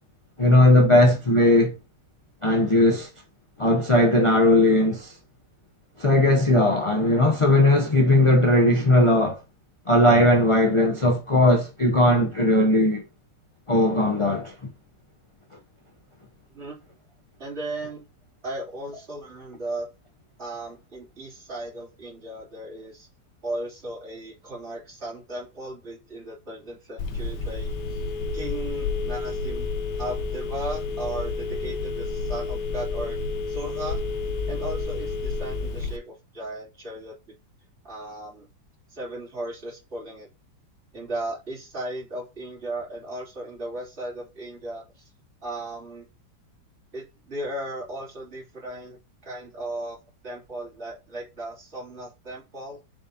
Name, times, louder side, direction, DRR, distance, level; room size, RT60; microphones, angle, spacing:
voice 1, 0.4-1.7 2.4-3.1 3.6-5.1 6.0-9.4 9.9-13.0 13.7-14.7, left 1 dB, 50° left, 0.3 m, -18 dB
voice 2, 17.4-18.1 18.4-19.9 20.4-23.1 23.4-28.1 28.3-29.7 29.9-33.2 33.5-34.0 34.5-37.4 37.8-38.5 38.9-40.3 40.9-45.1 45.4-46.1 46.9-50.0 50.2-52.8, right 1 dB, 35° right, 3.4 m, -36 dB
Telephone, 27.0-36.0, left 3 dB, 80° left, 1.5 m, -30 dB
6.8 x 5.0 x 2.8 m
omnidirectional pair, 1.9 m